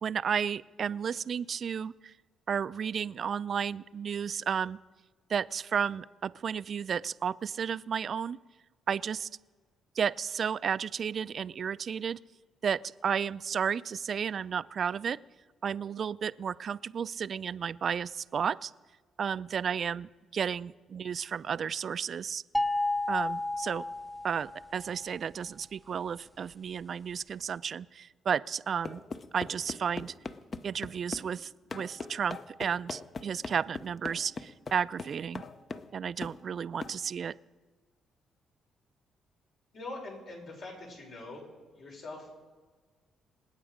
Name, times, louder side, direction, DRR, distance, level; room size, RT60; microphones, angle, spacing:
voice 1, 0.0-2.1 2.5-4.8 5.3-8.4 8.9-9.3 10.0-12.2 12.6-15.2 15.6-18.7 19.2-22.4 23.1-23.9 24.2-29.0 29.3-30.1 30.6-35.4 35.9-37.4, right 7 dB, 55° right, 17 dB, 0.4 m, -33 dB
sound 1, 22.5-24.8, left 2 dB, 5° left, 0.5 m, -31 dB
sound 2, 28.8-31.3 31.7-35.9 36.2-36.4 36.8-37.0, left 4 dB, 40° left, 0.7 m, -40 dB
voice 2, 39.7-41.5 41.7-42.3, left 2 dB, 65° left, -1 dB, 5.7 m, -43 dB
26.5 x 8.9 x 5.1 m, 1.4 s
cardioid pair, 90°, 0 cm